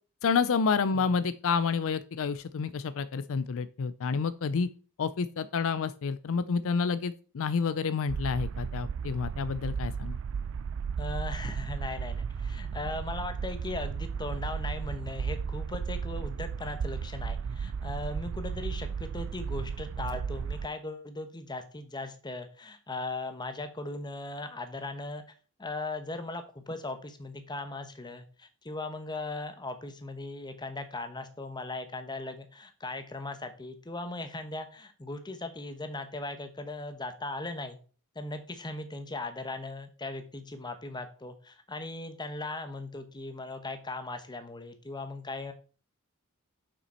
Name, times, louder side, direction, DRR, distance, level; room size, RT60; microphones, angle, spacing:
voice 1, 0.2-4.7 5.0-10.2, left 5 dB, 65° left, 15 dB, 0.4 m, -29 dB
sound 1, 8.1-20.7, right 6 dB, 65° right, 0.4 m, -34 dB
voice 2, 11.0-25.2 25.6-37.8 38.1-45.5, left 2 dB, 20° left, 8 dB, 1.0 m, -38 dB
6.7 x 6.0 x 4.3 m, 0.39 s
head